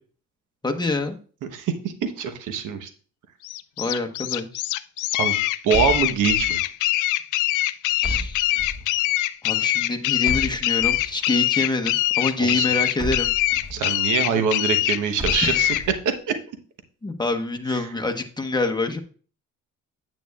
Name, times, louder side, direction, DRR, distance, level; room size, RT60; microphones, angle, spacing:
voice 1, 0.6-1.2 3.8-4.5 8.0-8.5 9.4-13.3 14.3-14.4 15.4-15.8 17.0-19.0, left 2 dB, 15° left, 4 dB, 1.1 m, -26 dB
voice 2, 1.5-2.9 5.2-5.4 5.6-6.6 12.4-12.7 13.7-15.7 17.7-17.8, right 6 dB, 80° right, 8 dB, 1.1 m, -24 dB
sound 1, 3.4-15.8, left 16 dB, 85° left, 0.5 m, -23 dB
sound 2, 5.7-6.7 8.0-9.0 10.2-11.2 13.0-13.8 15.2-16.0, left 1 dB, 10° right, 1.6 m, -33 dB
9.1 x 8.3 x 2.4 m, 0.40 s
cardioid pair, 90°, 30 cm